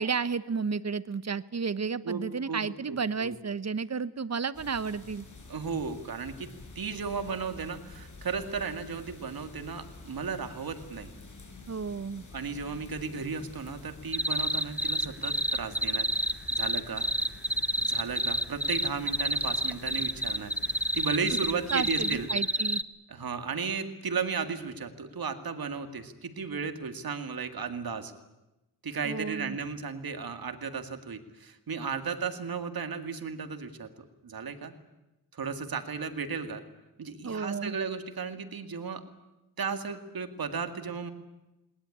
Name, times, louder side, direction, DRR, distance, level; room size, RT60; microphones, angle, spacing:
voice 1, 0.0-5.3 11.7-12.3 21.3-21.4 21.7-22.8 29.0-29.6 37.2-37.8, right 5 dB, 45° right, 16 dB, 1.0 m, -32 dB
voice 2, 2.5-3.3 5.5-11.1 12.3-16.1 16.5-17.1 17.8-22.3 23.1-28.1 28.8-33.9 34.2-34.7 35.3-36.6 37.0-39.0 39.6-41.1, right 5 dB, 70° right, 8 dB, 2.2 m, -35 dB
sound 1, 4.5-22.3, left 3 dB, 50° left, 5.7 m, -49 dB
sound 2, 14.1-22.8, right 1 dB, 5° right, 0.9 m, -28 dB
20.0 x 20.0 x 9.9 m, 0.98 s
wide cardioid pair, 75°, 37 cm